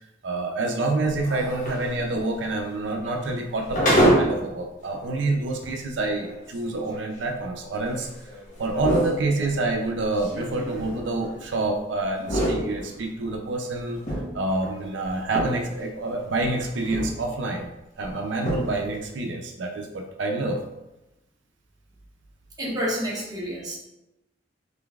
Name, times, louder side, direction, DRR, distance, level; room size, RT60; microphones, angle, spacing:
voice 1, 0.2-8.1 8.6-14.0 14.3-17.7 18.0-20.6, right 2 dB, 85° right, 2 dB, 0.5 m, -27 dB
sound 1, 1.0-4.5 4.9-5.0 5.6-5.7 6.2-11.7 12.0-13.3 13.7-15.8 16.1-17.2 17.5-17.6 18.0-18.1 18.3-18.9, equal, 45° left, 1.0 m, -28 dB
voice 2, 22.6-23.8, equal, 20° right, -4 dB, 0.8 m, -29 dB
3.8 x 3.3 x 2.4 m, 0.95 s
head